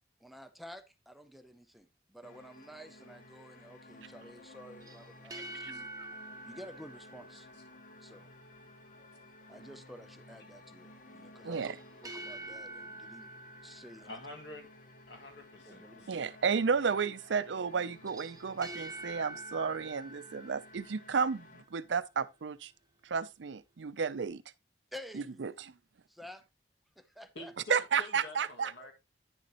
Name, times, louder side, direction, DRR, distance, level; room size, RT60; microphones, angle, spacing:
voice 1, 0.2-5.9 6.4-7.5 8.0-8.3 9.0-11.7 12.0-13.3 13.6-14.2 15.7-16.3 16.5-16.6 24.9-25.5 26.1-26.4 27.0-27.8 28.6-28.9, equal, ahead, 0.5 m, -51 dB
sound 1, 2.2-21.6, left 1 dB, 45° left, 0.9 m, -55 dB
sound 2, 4.8-8.1 11.5-14.8 17.9-21.5, right 2 dB, 20° right, 1.0 m, -47 dB
voice 2, 11.4-11.7 16.1-22.7 23.0-24.4 25.4-25.7 27.7-28.7, right 6 dB, 85° right, 0.5 m, -32 dB
voice 3, 14.0-14.7 15.1-16.3 27.4-28.9, left 2 dB, 75° left, 2.0 m, -48 dB
9.8 x 6.7 x 2.9 m
head